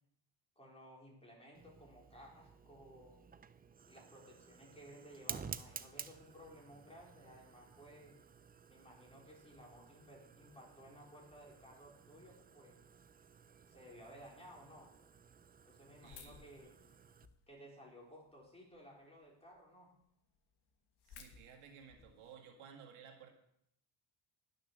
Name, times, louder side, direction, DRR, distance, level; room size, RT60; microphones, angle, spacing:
voice 1, 0.6-3.2 3.9-8.1 8.7-12.8 13.7-14.9 15.7-16.8 17.5-19.9, equal, 10° left, -3 dB, 4.6 m, -57 dB
Fire, 1.5-17.3, right 6 dB, 20° right, 0.4 m, -53 dB
sound 1, 16.0-17.6 18.1-18.8 19.2-19.3 19.5-19.6 20.0-20.1 20.3-22.3, left 6 dB, 55° left, 1.5 m, -58 dB
voice 2, 16.0-16.5 21.1-23.3, right 7 dB, 80° right, 3 dB, 1.9 m, -56 dB
11.0 x 6.5 x 6.2 m, 0.74 s
cardioid pair, 90°, 48 cm